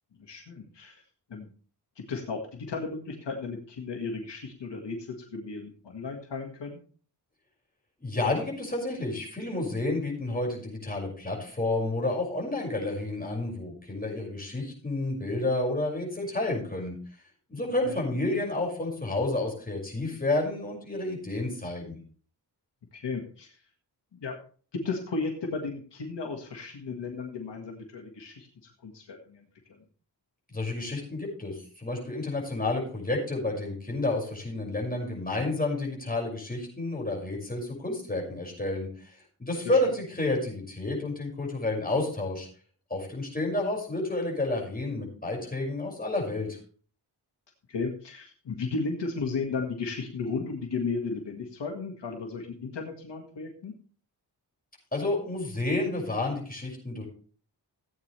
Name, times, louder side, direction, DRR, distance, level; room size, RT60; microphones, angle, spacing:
voice 1, 0.2-1.0 1.3-1.5 2.0-6.8 17.9-18.0 22.9-23.5 24.1-24.4 24.7-29.4 29.7-29.8 39.6-39.8 47.7-53.7, left 4 dB, 90° left, 3 dB, 1.8 m, -34 dB
voice 2, 8.0-17.0 17.5-22.0 30.5-42.5 42.9-46.6 54.9-57.1, left 2 dB, 20° left, -2 dB, 5.9 m, -30 dB
16.0 x 8.8 x 3.3 m, 0.41 s
cardioid pair, 70°, 41 cm